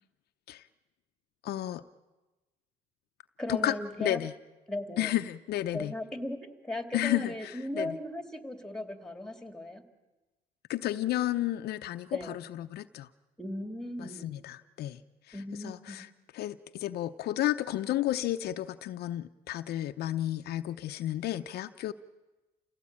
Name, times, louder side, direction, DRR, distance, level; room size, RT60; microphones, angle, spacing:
voice 1, 1.4-1.8 3.5-4.3 5.0-5.9 6.9-8.0 10.7-13.1 14.0-15.0 15.3-16.1 16.3-21.9, left 13 dB, 70° left, 9 dB, 0.7 m, -32 dB
voice 2, 3.4-4.2 4.7-5.1 5.7-9.8 12.1-12.4 13.4-14.3 15.3-16.0, left 1 dB, 5° left, 6 dB, 2.5 m, -37 dB
28.5 x 17.0 x 8.7 m, 1.2 s
cardioid pair, 110°, 17 cm